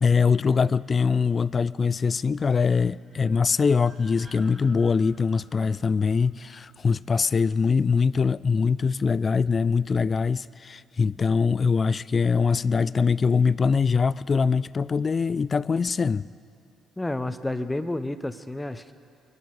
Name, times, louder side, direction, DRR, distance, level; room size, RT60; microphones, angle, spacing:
voice 1, 0.0-16.3, left 5 dB, 40° left, 0.3 m, -23 dB
sound 1, 2.6-6.7, right 2 dB, 35° right, 3.4 m, -54 dB
voice 2, 17.0-18.9, left 1 dB, 15° left, 0.8 m, -30 dB
24.0 x 12.0 x 4.2 m
hypercardioid pair, 50°, 0 cm